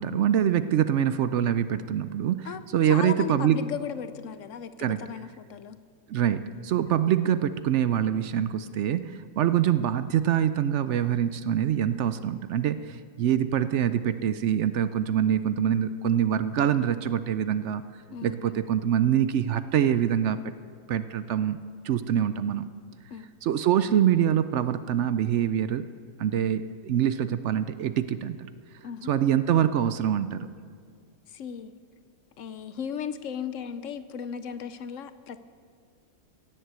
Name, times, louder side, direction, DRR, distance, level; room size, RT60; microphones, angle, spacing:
voice 1, 0.0-3.6 4.8-5.0 6.1-17.8 18.2-20.4 20.9-21.6 21.8-22.7 23.4-25.9 26.2-28.5 29.0-30.5, right 10 dB, 65° right, 13 dB, 0.8 m, -25 dB
voice 2, 2.4-5.8 18.1-18.6 23.1-23.3 28.8-29.1 31.3-31.7 32.4-35.4, left 7 dB, 70° left, 12 dB, 1.0 m, -36 dB
16.5 x 7.8 x 8.1 m, 2.1 s
omnidirectional pair, 1.4 m